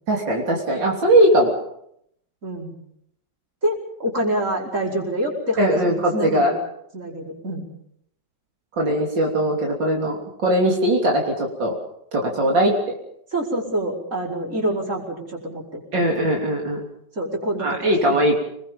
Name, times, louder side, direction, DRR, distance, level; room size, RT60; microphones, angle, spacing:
voice 1, 0.1-1.6 5.6-6.5 8.8-11.8 12.1-13.0 15.9-16.9 17.6-18.4, right 1 dB, 85° right, 0 dB, 4.1 m, -20 dB
voice 2, 2.4-2.7 3.6-6.6 6.9-7.6 13.3-16.0 17.2-18.3, right 1 dB, 40° right, -1 dB, 5.5 m, -26 dB
28.5 x 20.5 x 5.5 m, 0.72 s
omnidirectional pair, 1.9 m